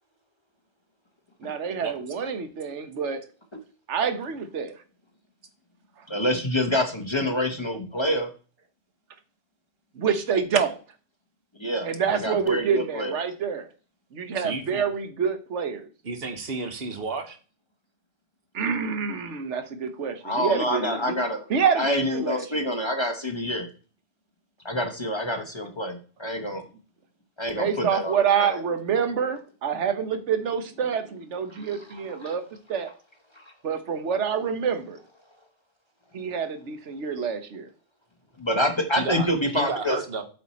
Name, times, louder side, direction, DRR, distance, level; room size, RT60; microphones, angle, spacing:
voice 1, 1.4-3.2 3.9-4.7 9.9-10.8 11.8-13.7 14.1-15.9 18.5-21.2 21.5-22.7 27.6-32.4 32.7-32.9 33.6-35.0 36.1-37.7, right 6 dB, 90° right, 9 dB, 1.3 m, -27 dB
voice 2, 6.1-8.3 11.6-13.2 20.2-21.5 21.8-23.7 24.6-26.6 27.4-28.6 31.5-31.8 32.2-32.3 33.4-33.5 38.4-40.0, left 1 dB, 25° left, 5 dB, 1.0 m, -27 dB
voice 3, 14.3-14.8 16.0-17.4 39.0-40.2, right 4 dB, 60° right, 7 dB, 1.3 m, -32 dB
7.9 x 4.4 x 4.2 m, 0.37 s
omnidirectional pair, 1.2 m